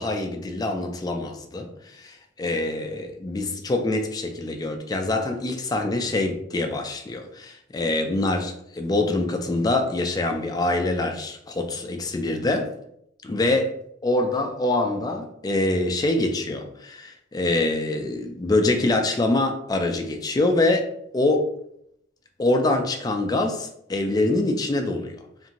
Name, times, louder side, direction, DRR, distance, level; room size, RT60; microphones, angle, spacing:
voice 1, 0.0-12.7 13.2-13.7 14.0-21.5 22.4-25.2, left 2 dB, 20° left, 4 dB, 0.3 m, -25 dB
2.7 x 2.5 x 2.7 m, 0.74 s
head